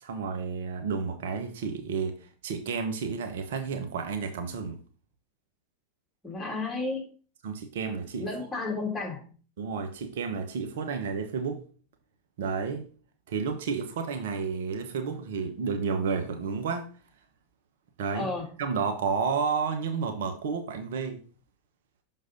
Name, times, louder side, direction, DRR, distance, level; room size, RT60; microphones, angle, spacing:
voice 1, 0.0-2.2 2.4-4.8 7.4-8.3 9.6-11.6 12.4-12.8 13.3-16.9 18.0-18.3 18.6-21.2, right 5 dB, 65° right, 1.1 m, -31 dB
voice 2, 6.2-7.0 8.2-9.3 18.1-18.5, left 3 dB, 10° left, 3.0 m, -32 dB
6.4 x 3.9 x 5.2 m
figure-of-eight pair, 90°, 0 cm